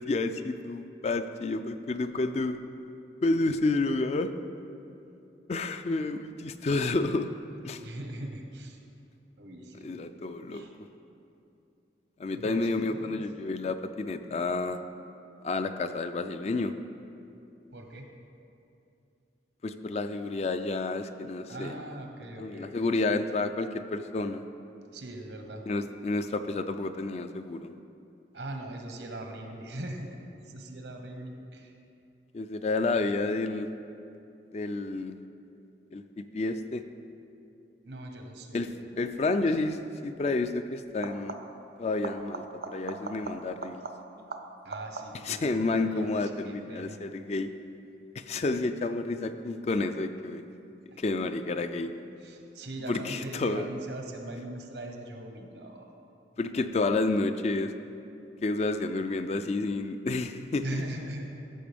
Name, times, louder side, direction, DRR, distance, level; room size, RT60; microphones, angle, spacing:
voice 1, 0.1-2.6 3.2-4.3 5.5-7.3 7.6-7.8 9.8-10.7 12.2-14.8 15.4-16.7 19.6-21.7 22.4-24.4 25.7-27.7 32.3-33.7 34.5-35.2 35.9-36.8 38.5-38.7 39.0-41.3 41.8-43.8 45.3-47.5 48.2-50.4 51.0-51.9 52.9-53.7 56.4-57.7 58.4-60.8, left 3 dB, 40° left, 9 dB, 0.3 m, -30 dB
voice 2, 7.8-8.8 9.4-10.0 10.5-10.7 12.3-13.2 17.7-18.1 21.5-22.9 24.9-25.6 28.3-31.7 37.8-38.7 44.6-47.0 50.9-51.0 52.2-55.9 60.6-61.2, right 1 dB, 85° right, 3 dB, 1.1 m, -40 dB
sound 1, 39.4-39.7 40.9-41.7 42.0-45.4 50.8-51.4 52.9-53.0, right 3 dB, 60° right, 0.5 m, -42 dB
14.0 x 6.7 x 3.5 m, 2.6 s
head